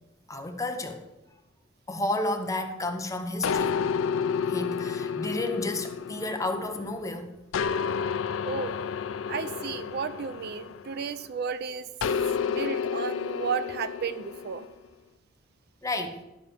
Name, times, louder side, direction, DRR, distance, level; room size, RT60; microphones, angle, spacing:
voice 1, 0.3-1.1 1.9-3.8 4.5-7.3 15.8-16.2, left 2 dB, 15° left, 6 dB, 0.8 m, -31 dB
sound 1, 3.4-7.0 7.5-11.3 12.0-14.7, left 6 dB, 70° left, 0.4 m, -30 dB
voice 2, 8.4-8.8 9.3-11.9 12.4-14.7, right 6 dB, 50° right, 13 dB, 0.4 m, -33 dB
11.5 x 4.1 x 6.9 m, 1.0 s
head